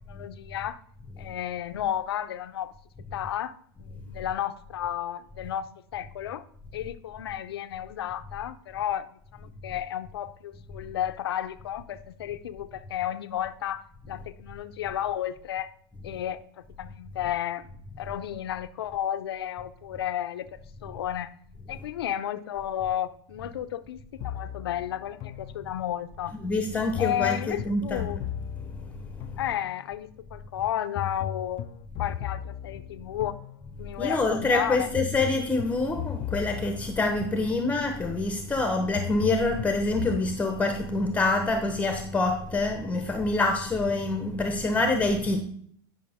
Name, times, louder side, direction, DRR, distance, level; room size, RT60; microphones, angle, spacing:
voice 1, 0.1-0.8 1.2-2.7 3.1-3.5 3.8-6.4 6.7-15.7 16.0-16.4 16.8-17.7 18.0-20.5 20.8-21.3 21.7-24.0 24.2-26.3 27.0-28.2 29.4-31.6 32.0-33.3 33.8-34.9, left 11 dB, 85° left, 0.7 m, -32 dB
sound 1, 24.2-26.1 27.0-30.0 31.0-34.0 35.0-38.0 39.0-40.3, left 11 dB, 45° left, 0.5 m, -37 dB
voice 2, 26.3-28.3 28.7-29.4 34.0-45.4, left 2 dB, 10° left, 1.0 m, -26 dB
11.0 x 5.9 x 3.5 m
hypercardioid pair, 115°, 13 cm